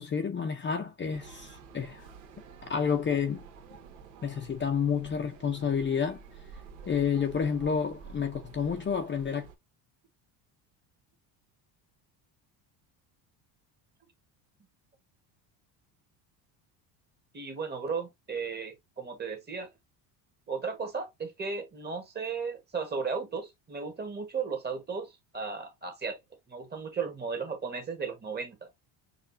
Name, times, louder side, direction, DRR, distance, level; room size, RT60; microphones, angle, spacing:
voice 1, 0.0-2.1 2.6-3.4 4.2-6.2 6.9-9.5, left 6 dB, 25° left, 0.7 m, -30 dB
sound 1, 1.1-9.5, right 5 dB, 80° right, 1.5 m, -50 dB
voice 2, 17.3-19.7 20.5-26.2 26.5-28.7, right 5 dB, 20° right, 1.4 m, -35 dB
6.7 x 2.4 x 2.6 m
cardioid pair, 115°, 44 cm